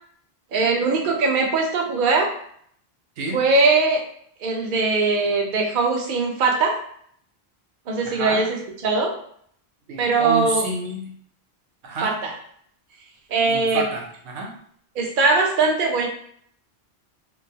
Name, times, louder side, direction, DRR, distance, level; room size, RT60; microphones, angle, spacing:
voice 1, 0.5-2.3 3.3-4.0 4.4-6.7 7.9-8.5 8.8-9.1 10.0-10.6 12.0-12.3 13.3-13.8 15.0-16.1, right 3 dB, 55° right, 0 dB, 0.7 m, -20 dB
voice 2, 8.0-8.5 9.9-11.1 11.8-12.1 13.5-14.5, right 3 dB, 85° right, 1 dB, 0.9 m, -29 dB
2.6 x 2.3 x 2.7 m, 0.64 s
omnidirectional pair, 1.1 m